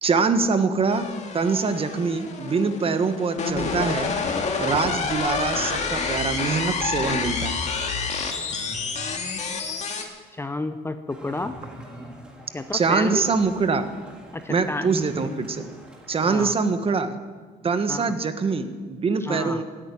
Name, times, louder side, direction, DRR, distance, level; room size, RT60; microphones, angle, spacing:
voice 1, 0.0-1.1 1.3-4.1 4.6-7.6 12.7-13.9 14.5-15.7 16.1-17.2 17.6-19.6, right 4 dB, 35° right, 9 dB, 1.4 m, -24 dB
sound 1, 0.9-10.0, left 5 dB, 40° left, 2.2 m, -28 dB
voice 2, 10.3-11.6 12.5-13.3 14.3-14.9 16.2-16.5 17.9-18.1 19.2-19.6, left 2 dB, 15° left, 10 dB, 0.7 m, -31 dB
sound 2, 11.1-16.5, right 1 dB, 5° right, 3.2 m, -42 dB
15.5 x 8.9 x 9.9 m, 1.5 s
cardioid pair, 110°, 17 cm